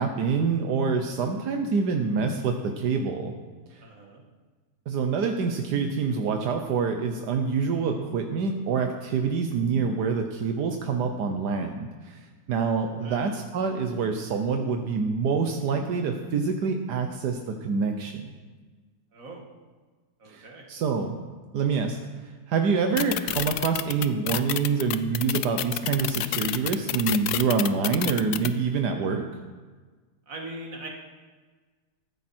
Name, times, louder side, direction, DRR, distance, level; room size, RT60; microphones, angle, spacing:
voice 1, 0.0-3.3 3.7-3.8 4.9-18.1 20.3-21.1 21.5-22.0 22.2-29.2, right 5 dB, 80° right, 4 dB, 1.5 m, -26 dB
voice 2, 3.8-4.2 13.0-13.3 19.1-19.4 20.2-20.7 30.3-30.9, right 2 dB, 55° right, 0 dB, 2.5 m, -41 dB
sound 1, 23.0-28.5, left 12 dB, 75° left, 1.1 m, -28 dB
14.5 x 14.0 x 4.4 m, 1.4 s
omnidirectional pair, 1.7 m